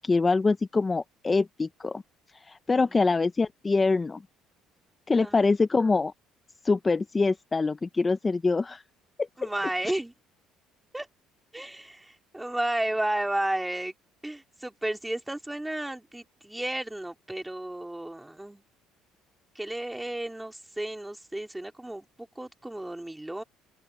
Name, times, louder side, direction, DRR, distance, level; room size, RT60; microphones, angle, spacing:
voice 1, 0.0-2.0 2.3-4.2 5.1-6.1 6.6-8.8 9.2-9.5, left 3 dB, 20° left, 0.6 m, -25 dB
voice 2, 2.7-3.2 5.2-5.5 9.4-10.1 10.9-11.1 11.5-13.9 14.2-18.6 19.5-23.4, right 1 dB, 5° right, 3.1 m, -33 dB
open air
cardioid pair, 120°, 0 cm